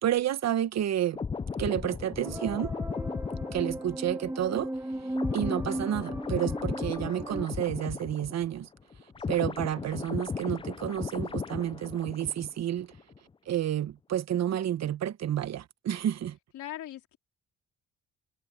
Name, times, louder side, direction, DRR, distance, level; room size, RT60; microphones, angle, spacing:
voice 1, 0.0-1.2 1.6-2.7 3.5-4.7 5.3-8.7 9.3-12.9 13.5-16.4, right 11 dB, 60° right, 1.1 m, -30 dB
sound 1, 1.1-8.7 8.9-12.6 12.9-13.2, left 5 dB, 20° left, 0.4 m, -36 dB
sound 2, 2.2-7.5, right 1 dB, 10° right, 2.6 m, -36 dB
voice 2, 4.9-5.3 9.2-9.6 16.5-17.2, left 13 dB, 75° left, 3.7 m, -43 dB
cardioid pair, 90°, 30 cm